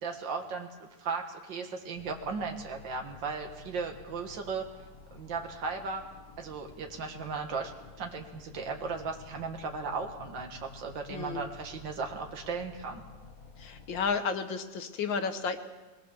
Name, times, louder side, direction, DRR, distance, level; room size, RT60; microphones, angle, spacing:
voice 1, 0.0-4.7 5.1-6.0 6.4-7.7 8.0-13.0, right 4 dB, 75° right, 3 dB, 2.3 m, -36 dB
sound 1, 2.0-14.1, left 4 dB, 50° left, 2.1 m, -51 dB
voice 2, 11.1-11.4 13.6-15.6, left 5 dB, 80° left, 8 dB, 2.0 m, -32 dB
20.5 x 20.0 x 7.1 m, 1.2 s
omnidirectional pair, 2.0 m